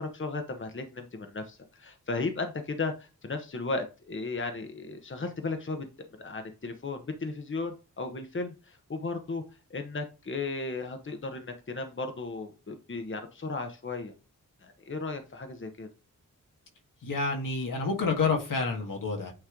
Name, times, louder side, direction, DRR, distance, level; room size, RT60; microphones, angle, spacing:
voice 1, 0.0-5.8 6.2-9.4 9.7-14.1 14.6-15.9, left 3 dB, 40° left, 6 dB, 1.1 m, -35 dB
voice 2, 17.0-19.3, left 4 dB, 80° left, 1 dB, 1.9 m, -28 dB
8.9 x 3.2 x 3.8 m, 0.31 s
cardioid pair, 60°, 32 cm